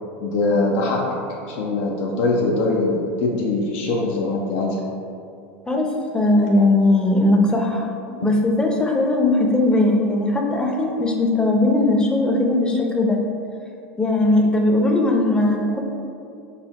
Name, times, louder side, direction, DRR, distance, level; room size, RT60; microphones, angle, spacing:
voice 1, 0.2-1.1 1.4-4.8 8.2-8.3, left 2 dB, 65° left, -1 dB, 0.6 m, -22 dB
voice 2, 5.7-13.2 14.0-15.8, left 2 dB, 10° left, 1 dB, 0.6 m, -19 dB
5.5 x 2.0 x 4.1 m, 2.5 s
hypercardioid pair, 90°, 7 cm